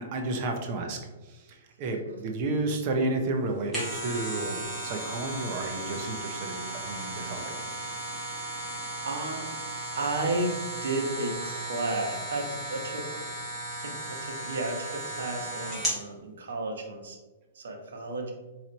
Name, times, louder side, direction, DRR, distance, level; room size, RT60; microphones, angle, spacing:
voice 1, 0.0-7.5, right 2 dB, 30° right, 3 dB, 0.6 m, -32 dB
sound 1, 3.5-16.0 16.5-16.6, right 1 dB, ahead, 1.3 m, -36 dB
voice 2, 8.3-9.6 9.9-13.3 13.8-17.2 17.5-18.3, right 2 dB, 85° right, 2 dB, 1.0 m, -33 dB
4.3 x 3.0 x 3.9 m, 1.2 s
hypercardioid pair, 180°, 0 cm